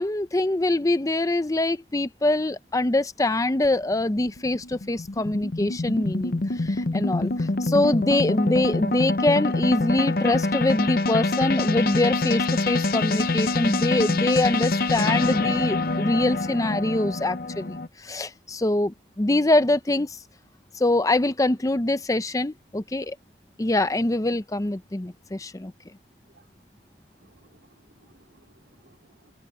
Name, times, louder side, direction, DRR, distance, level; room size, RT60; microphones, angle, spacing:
voice 1, 0.0-20.2 20.7-23.2 23.6-25.7, left 2 dB, 20° left, 0.6 m, -24 dB
sound 1, 3.6-17.9, left 2 dB, 55° left, 0.8 m, -25 dB
voice 2, 27.2-29.3, right 2 dB, 85° right, 3.4 m, -60 dB
head